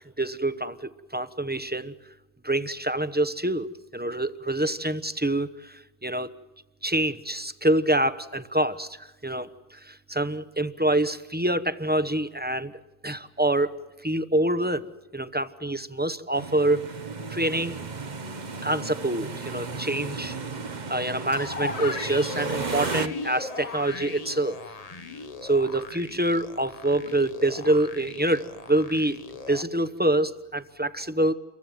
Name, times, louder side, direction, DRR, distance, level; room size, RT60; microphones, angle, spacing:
voice 1, 0.0-1.9 2.4-3.7 3.9-6.3 6.8-13.8 14.0-14.9 15.1-16.9 17.3-17.8 18.6-20.4 20.9-24.6 25.4-29.2 29.5-31.3, right 1 dB, 10° right, 12 dB, 0.9 m, -26 dB
sound 1, 16.3-23.1, right 4 dB, 45° right, 1.2 m, -34 dB
sound 2, 21.3-29.6, left 4 dB, 40° left, 1.1 m, -38 dB
29.5 x 23.5 x 7.7 m, 1.0 s
omnidirectional pair, 1.1 m